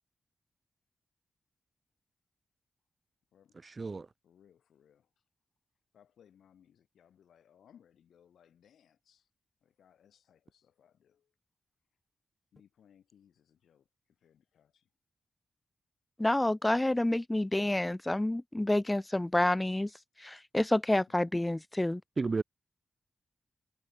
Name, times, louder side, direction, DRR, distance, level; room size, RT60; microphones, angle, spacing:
voice 1, 3.6-4.1 22.2-22.4, right 3 dB, 45° right, 0.7 m, -32 dB
voice 2, 4.2-5.1 5.9-9.3 9.6-11.3 12.5-13.9 14.2-14.9, left 9 dB, 90° left, 4.5 m, -64 dB
voice 3, 16.2-19.9 20.2-22.0, left 1 dB, 15° left, 0.4 m, -28 dB
cardioid pair, 60°, 0 cm